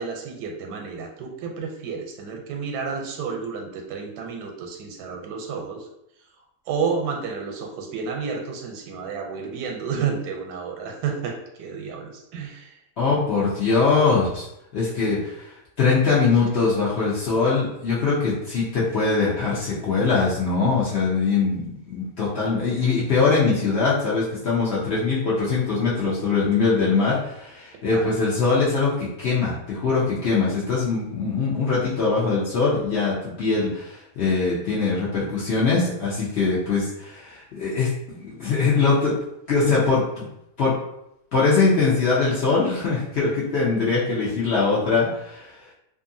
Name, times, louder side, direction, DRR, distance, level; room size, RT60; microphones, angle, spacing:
voice 1, 0.0-5.9 6.7-12.8 27.9-28.0, right 5 dB, 85° right, 2 dB, 1.2 m, -31 dB
voice 2, 13.0-14.4 14.7-15.5 15.8-37.9 38.2-39.2 39.5-40.2 40.6-40.7 41.3-45.5, left 4 dB, 60° left, -7 dB, 0.7 m, -22 dB
2.6 x 2.5 x 2.5 m, 0.80 s
omnidirectional pair, 1.7 m